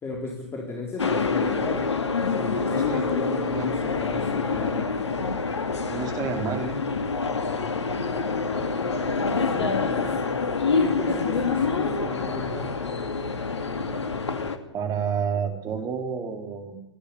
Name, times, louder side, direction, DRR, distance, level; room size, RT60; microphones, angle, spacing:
voice 1, 0.0-1.9 2.3-5.0 9.4-10.2 10.7-12.8, left 3 dB, 15° left, 1 dB, 3.9 m, -34 dB
sound 1, 1.0-14.6, left 4 dB, 70° left, 2.5 m, -26 dB
voice 2, 2.8-3.1 3.4-3.7 5.8-6.8 14.7-16.8, right 6 dB, 25° right, 6 dB, 3.9 m, -30 dB
28.0 x 11.5 x 9.6 m, 0.86 s
figure-of-eight pair, 115°, 15 cm